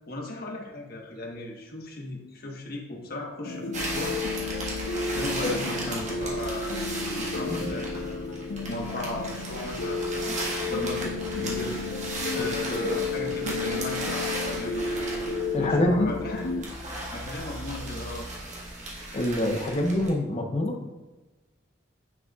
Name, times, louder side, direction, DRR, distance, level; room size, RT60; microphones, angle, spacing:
voice 1, 0.1-4.2 5.1-6.7 7.1-11.8 12.3-15.1 15.6-16.4 17.1-18.3, left 2 dB, 50° left, 0 dB, 1.3 m, -37 dB
sound 1, 3.4-16.6, left 3 dB, 80° left, 0.7 m, -32 dB
sound 2, 3.7-20.1, right 1 dB, 40° right, 1.6 m, -36 dB
voice 2, 15.5-16.1 19.1-20.8, left 1 dB, 35° left, 3 dB, 0.9 m, -25 dB
9.6 x 5.1 x 2.4 m, 1.2 s
head